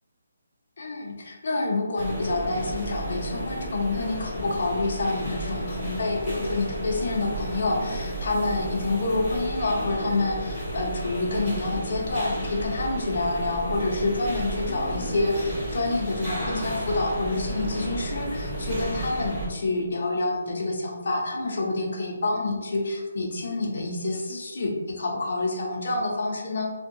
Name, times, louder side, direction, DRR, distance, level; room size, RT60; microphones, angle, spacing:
voice 1, 0.8-26.7, left 2 dB, 60° left, -1 dB, 0.5 m, -28 dB
sound 1, 2.0-19.5, right 1 dB, 20° right, 1.2 m, -32 dB
2.6 x 2.2 x 2.6 m, 1.3 s
hypercardioid pair, 165°, 0 cm